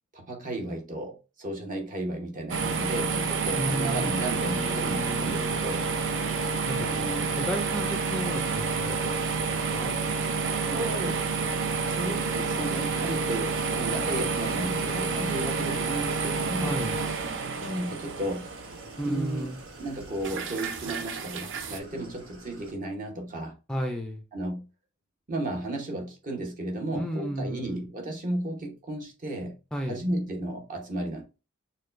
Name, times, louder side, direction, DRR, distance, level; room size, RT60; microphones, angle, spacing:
voice 1, 0.1-5.9 6.8-7.3 10.7-11.2 11.9-16.8 17.6-18.7 19.0-19.5 19.8-23.6 24.3-24.6 25.3-29.5 29.9-31.2, right 1 dB, 40° right, 1.0 m, -34 dB
sound 1, 2.5-21.8, right 4 dB, 60° right, 0.5 m, -29 dB
voice 2, 3.5-5.5 6.7-6.9 7.4-9.1 9.4-10.0 16.6-17.0 19.0-19.6 23.7-24.2 26.9-27.8 29.7-30.0, equal, 5° left, 0.4 m, -33 dB
Idling, 13.6-22.7, right 1 dB, 90° right, 1.2 m, -49 dB
6.3 x 2.2 x 2.5 m
head